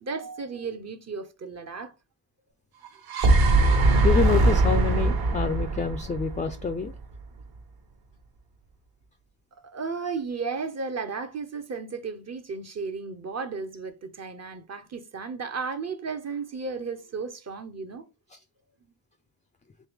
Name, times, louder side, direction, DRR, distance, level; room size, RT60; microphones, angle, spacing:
voice 1, 0.0-1.9 9.7-18.1, right 4 dB, 35° right, 0.6 m, -34 dB
sound 1, 2.9-7.0, right 2 dB, 55° right, 1.0 m, -21 dB
voice 2, 4.0-6.9, left 5 dB, 20° left, 0.3 m, -27 dB
3.4 x 3.2 x 3.4 m
cardioid pair, 75°, 44 cm